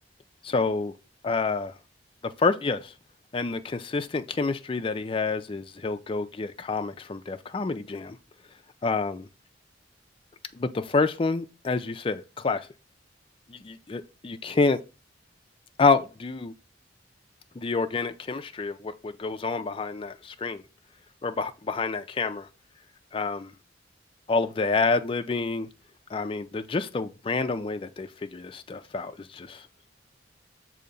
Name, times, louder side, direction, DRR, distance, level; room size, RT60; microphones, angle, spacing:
voice 1, 0.4-0.9 1.2-1.7 2.2-2.9 3.3-8.2 8.8-9.3 10.5-12.7 13.5-14.8 15.8-16.5 17.6-20.6 21.2-22.5 23.1-23.5 24.3-25.7 26.1-29.7, left 4 dB, 30° left, 0.4 m, -28 dB
6.7 x 2.8 x 5.2 m
head